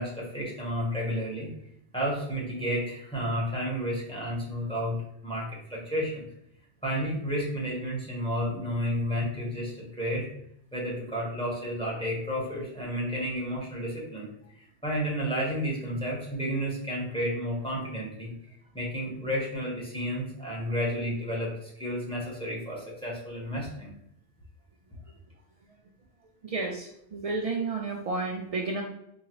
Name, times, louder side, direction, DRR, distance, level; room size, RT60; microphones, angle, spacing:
voice 1, 0.0-1.5 1.9-5.0 5.2-6.3 6.8-10.3 10.7-14.3 14.5-18.3 18.7-23.9, equal, 5° left, -4 dB, 1.0 m, -31 dB
voice 2, 26.4-28.8, right 3 dB, 70° right, 0 dB, 0.3 m, -31 dB
3.8 x 3.0 x 3.0 m, 0.76 s
omnidirectional pair, 1.1 m